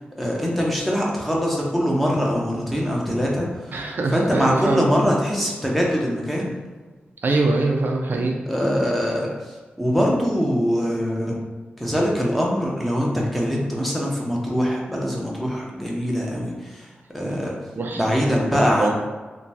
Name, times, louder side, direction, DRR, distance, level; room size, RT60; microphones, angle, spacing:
voice 1, 0.2-3.7 4.1-6.5 8.5-11.4 11.8-16.9 17.1-17.5 17.9-18.9, equal, 5° left, -3 dB, 0.7 m, -23 dB
voice 2, 3.7-4.9 7.2-8.4 17.2-17.4 17.8-18.0 18.5-18.9, right 2 dB, 60° right, 1 dB, 0.3 m, -23 dB
2.9 x 2.2 x 2.7 m, 1.3 s
cardioid pair, 60°, 4 cm